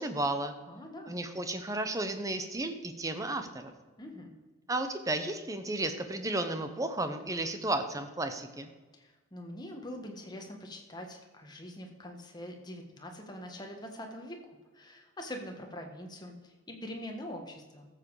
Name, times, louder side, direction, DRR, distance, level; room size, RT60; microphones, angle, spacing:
voice 1, 0.0-0.5 1.1-3.7 4.7-8.7, right 2 dB, 15° right, 8 dB, 0.8 m, -33 dB
voice 2, 0.7-1.2 4.0-4.3 8.9-17.9, left 1 dB, 20° left, 3 dB, 1.5 m, -44 dB
13.5 x 7.5 x 4.8 m, 1.3 s
head